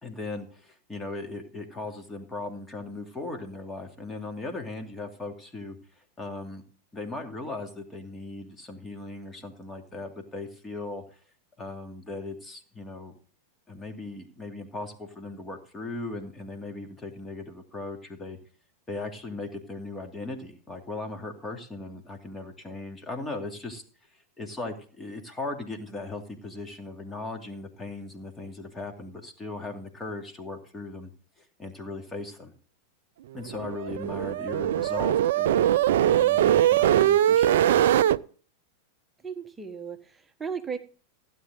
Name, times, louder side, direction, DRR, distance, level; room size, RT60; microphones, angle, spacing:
voice 1, 0.0-6.6 6.9-11.0 11.6-13.2 13.7-18.4 18.9-23.8 24.4-31.1 31.4-32.5 33.3-35.7 36.0-37.8, left 2 dB, 15° left, 4 dB, 2.6 m, -38 dB
sound 1, 33.5-38.2, right 11 dB, 55° right, 0.4 m, -21 dB
voice 2, 39.2-40.8, right 6 dB, 15° right, 6 dB, 1.4 m, -35 dB
16.0 x 9.5 x 3.9 m, 0.43 s
figure-of-eight pair, 90°, 0 cm